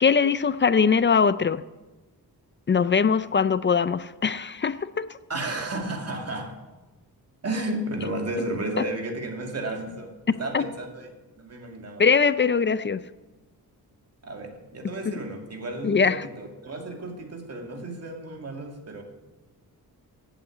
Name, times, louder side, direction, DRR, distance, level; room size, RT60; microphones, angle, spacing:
voice 1, 0.0-1.6 2.7-5.1 10.5-10.6 12.0-13.0 15.8-16.2, left 5 dB, 30° left, 14 dB, 0.4 m, -21 dB
voice 2, 5.3-6.6 7.4-11.1 11.4-12.0 14.2-19.0, right 2 dB, 40° right, 3 dB, 2.2 m, -33 dB
16.0 x 8.2 x 8.4 m, 1.1 s
wide cardioid pair, 170°, 38 cm